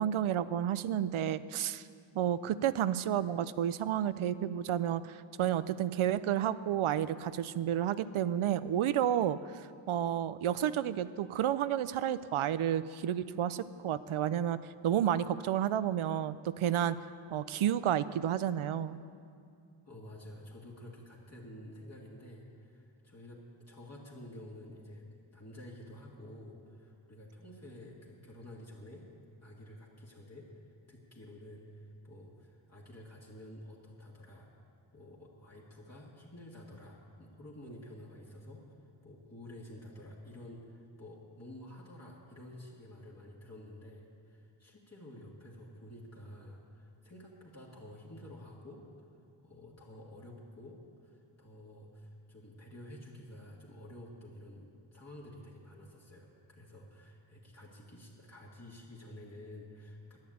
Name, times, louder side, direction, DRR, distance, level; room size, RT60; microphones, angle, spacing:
voice 1, 0.0-1.8 2.2-14.6 14.8-17.0 17.3-19.0, right 10 dB, 80° right, 15 dB, 0.6 m, -31 dB
voice 2, 19.9-23.4 23.7-25.0 25.3-29.1 29.4-30.5 30.9-34.5 34.9-38.6 39.0-60.2, left 1 dB, 30° left, -5 dB, 2.0 m, -50 dB
11.0 x 10.5 x 8.5 m, 2.4 s
wide cardioid pair, 90°, 48 cm